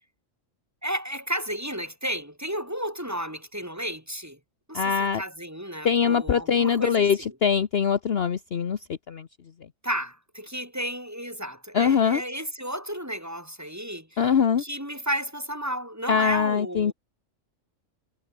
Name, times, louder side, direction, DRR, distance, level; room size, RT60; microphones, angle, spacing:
voice 1, 0.8-4.4 4.7-7.4 9.8-16.9, equal, 10° right, 6.1 m, -33 dB
voice 2, 4.7-5.2 5.8-8.8 9.1-9.3 11.7-12.2 14.2-14.6 16.1-16.9, left 7 dB, 50° left, 1.1 m, -22 dB
omnidirectional pair, 1.4 m